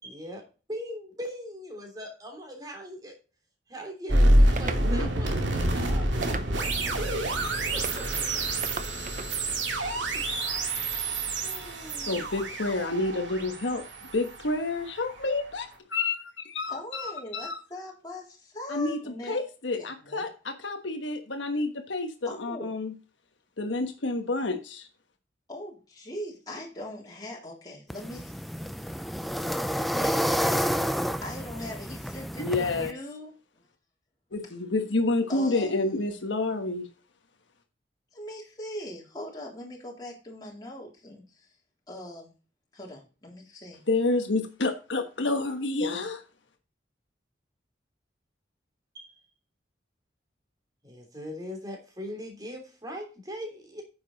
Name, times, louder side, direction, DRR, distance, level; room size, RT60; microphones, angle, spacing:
voice 1, 0.0-3.2 3.7-7.3 7.7-8.0 9.9-10.3 11.4-12.2 48.9-49.1 50.8-53.8, equal, 20° right, 3.2 m, -41 dB
sound 1, 4.1-15.1, right 1 dB, 85° right, 2.4 m, -27 dB
sound 2, 4.6-4.9 6.2-6.8 7.8-8.1 8.6-9.3, right 4 dB, 45° right, 0.8 m, -36 dB
voice 2, 12.1-13.8 14.1-17.6 18.7-22.9 23.6-24.9 32.4-32.9 34.3-36.9 43.9-46.2, left 2 dB, 90° left, 1.3 m, -29 dB
voice 3, 16.6-19.4 19.8-20.2 22.2-22.7 25.5-33.3 35.3-35.7 38.1-41.5 41.9-42.3 42.7-43.8, left 1 dB, 20° left, 3.4 m, -41 dB
sound 3, 27.9-32.9, equal, ahead, 0.4 m, -29 dB
9.6 x 7.2 x 4.0 m
head